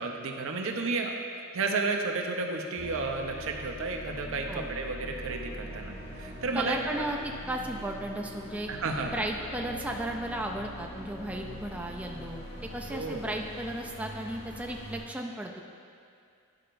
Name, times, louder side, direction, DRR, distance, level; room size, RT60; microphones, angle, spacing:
voice 1, 0.0-6.8 8.7-9.2 12.9-13.2, right 3 dB, 65° right, 2 dB, 0.6 m, -32 dB
sound 1, 2.8-15.0, equal, 55° left, 1.6 m, -42 dB
voice 2, 6.5-8.7 9.1-12.4 12.7-15.6, right 1 dB, 5° right, 1 dB, 0.4 m, -35 dB
10.5 x 5.6 x 2.5 m, 2.4 s
head